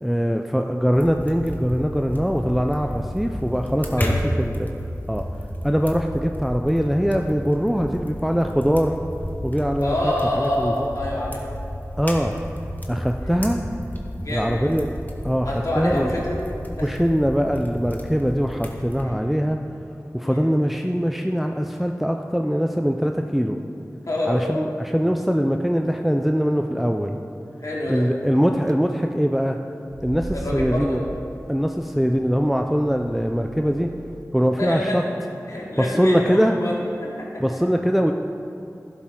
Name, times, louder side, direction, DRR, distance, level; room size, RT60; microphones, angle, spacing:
voice 1, 0.0-4.1 4.4-4.7 5.1-5.2 5.6-9.0 9.4-10.9 12.0-12.3 12.9-13.6 14.3-14.9 15.2-16.1 16.8-19.6 20.1-23.6 24.2-27.2 27.9-29.6 30.0-31.0 31.5-33.9 34.3-35.0 35.8-36.6 37.4-38.1, equal, ahead, 4 dB, 0.5 m, -22 dB
sound 1, 0.9-19.0, equal, 30° left, 1.4 m, -32 dB
voice 2, 9.8-11.4 13.2-13.4 14.2-14.7 15.4-16.4 16.8-17.0 19.0-19.2 20.2-20.4 24.1-24.4 27.6-28.1 30.3-31.0 34.6-35.0 35.5-36.7 37.0-37.4, left 1 dB, 65° left, -5 dB, 2.9 m, -27 dB
sound 2, 28.3-28.7 29.8-34.2, right 2 dB, 85° right, 0.6 m, -38 dB
11.5 x 11.5 x 3.8 m, 2.6 s
wide cardioid pair, 50°, 6 cm